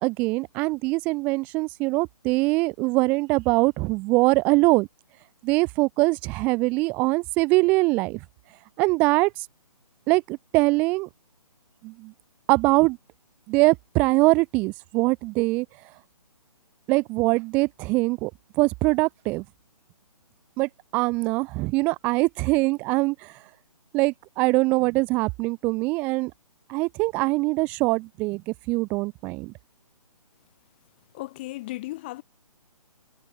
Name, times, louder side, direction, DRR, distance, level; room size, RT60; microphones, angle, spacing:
voice 1, 0.0-4.9 5.4-8.2 8.8-9.3 10.1-11.1 11.8-12.1 12.5-13.0 13.5-15.7 16.9-18.3 18.6-19.4 20.6-23.3 23.9-26.3 26.7-29.5, right 24 dB, 10° right, 1.2 m, -23 dB
voice 2, 31.1-32.2, left 18 dB, 15° left, 3.1 m, -35 dB
hypercardioid pair, 180°, 20 cm